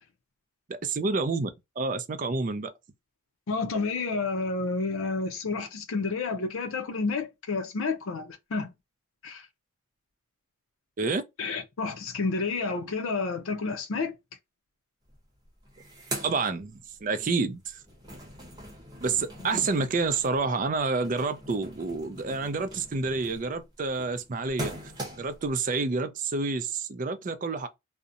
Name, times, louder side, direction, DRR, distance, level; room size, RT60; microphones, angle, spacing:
voice 1, 0.7-1.5 1.8-2.7 11.0-11.2 16.2-17.8 19.0-24.9 25.2-27.7, right 4 dB, 40° right, 0.4 m, -29 dB
voice 2, 3.5-8.7 9.2-9.5 11.4-14.1, left 4 dB, 85° left, 0.5 m, -30 dB
sound 1, 15.1-15.2 15.5-17.2 17.6-25.5, right 1 dB, 20° right, 0.8 m, -41 dB
2.7 x 2.0 x 2.4 m
head